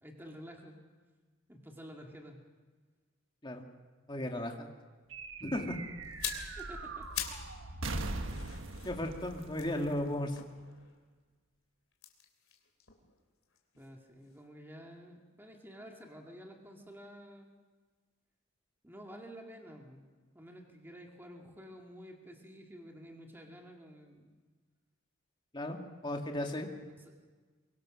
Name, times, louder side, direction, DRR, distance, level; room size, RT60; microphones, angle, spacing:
voice 1, 0.0-0.8 1.5-2.4 6.6-7.1 13.8-17.5 18.8-20.1 20.3-24.4 26.8-27.1, equal, 10° right, 1 dB, 2.2 m, -50 dB
voice 2, 4.1-4.7 5.4-5.8 8.9-10.3 25.5-26.7, left 1 dB, 20° left, 2 dB, 2.2 m, -35 dB
sound 1, 5.1-10.8, right 2 dB, 65° right, 1.4 m, -41 dB
sound 2, 6.0-7.5 7.8-11.1 11.9-14.0 14.2-14.4, left 10 dB, 80° left, 3.3 m, -44 dB
23.5 x 23.5 x 6.4 m, 1.4 s
head